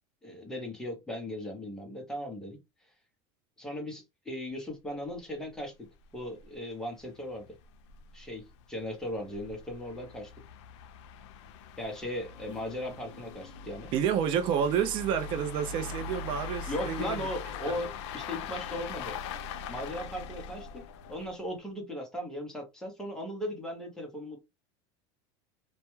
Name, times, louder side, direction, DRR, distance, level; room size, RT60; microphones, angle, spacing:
voice 1, 0.2-2.6 3.6-5.7 6.1-7.5 8.1-8.4 8.7-10.3 11.8-13.9 16.7-19.2 19.7-20.8 21.1-24.4, left 1 dB, 5° left, 0.6 m, -37 dB
sound 1, 5.1-5.2 5.5-5.6 6.0-6.1 6.4-6.5 7.2-21.5, left 6 dB, 80° left, 0.4 m, -42 dB
voice 2, 13.9-17.2 17.6-17.8, right 8 dB, 35° right, 0.3 m, -29 dB
2.2 x 2.1 x 2.9 m
supercardioid pair, 160°, 15 cm